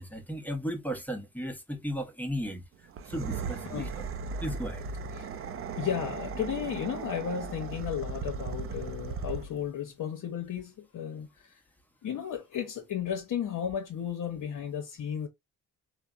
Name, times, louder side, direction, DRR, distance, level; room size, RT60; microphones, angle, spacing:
voice 1, 0.0-2.6 3.0-3.9 4.4-4.9, equal, 5° left, 0.8 m, -35 dB
sound 1, 2.9-9.7, right 5 dB, 35° right, 0.4 m, -37 dB
voice 2, 5.8-11.6 12.0-15.3, left 8 dB, 55° left, 0.7 m, -34 dB
3.2 x 2.0 x 2.4 m
supercardioid pair, 55°, 37 cm